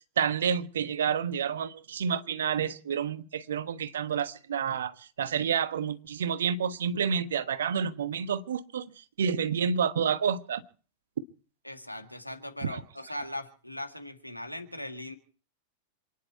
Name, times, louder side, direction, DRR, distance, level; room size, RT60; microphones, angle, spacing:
voice 1, 0.2-8.9 9.2-10.6 12.6-12.8, right 7 dB, 65° right, 1.3 m, -29 dB
voice 2, 11.6-15.2, left 1 dB, 90° left, 1.9 m, -39 dB
27.5 x 10.5 x 4.6 m
figure-of-eight pair, 90°, 0 cm